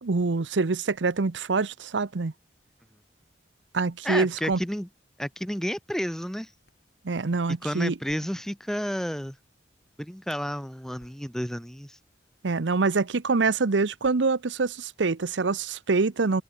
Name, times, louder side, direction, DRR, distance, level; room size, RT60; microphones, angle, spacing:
voice 1, 0.0-2.3 3.7-4.6 7.0-7.9 12.4-16.4, right 4 dB, 85° right, 0.8 m, -25 dB
voice 2, 4.0-4.9 5.2-6.5 7.6-9.4 10.0-12.0, equal, 5° left, 0.9 m, -31 dB
sound 1, 6.7-6.9 8.0-8.7 9.5-9.7 10.0-10.1 11.0-11.6 12.5-12.7 14.0-14.6, left 1 dB, 60° left, 4.7 m, -62 dB
head